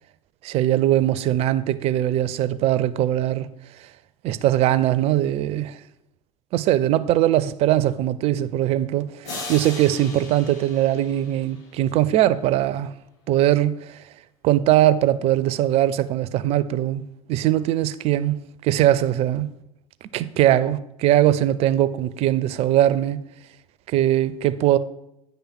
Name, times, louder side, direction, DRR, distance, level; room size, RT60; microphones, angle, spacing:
voice 1, 0.4-3.5 3.8-3.9 4.2-5.8 6.5-12.9 13.3-14.0 14.4-17.0 17.3-19.5 20.1-23.2 23.9-24.8, right 13 dB, 35° right, 0.4 m, -21 dB
sound 1, 9.2-11.9, left 3 dB, 60° left, 2.6 m, -37 dB
9.2 x 3.4 x 6.0 m
figure-of-eight pair, 75°, 17 cm